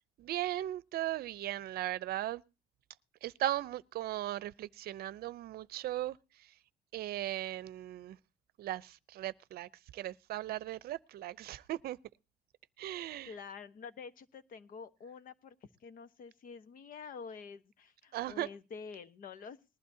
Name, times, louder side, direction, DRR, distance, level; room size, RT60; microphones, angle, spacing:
voice 1, 0.2-2.4 3.2-6.2 6.9-8.2 8.6-12.0 12.8-13.3 18.1-18.5, right 14 dB, 65° right, 0.7 m, -37 dB
voice 2, 13.3-19.6, left 5 dB, 55° left, 1.2 m, -48 dB
20.0 x 12.0 x 2.8 m
cardioid pair, 110°, 17 cm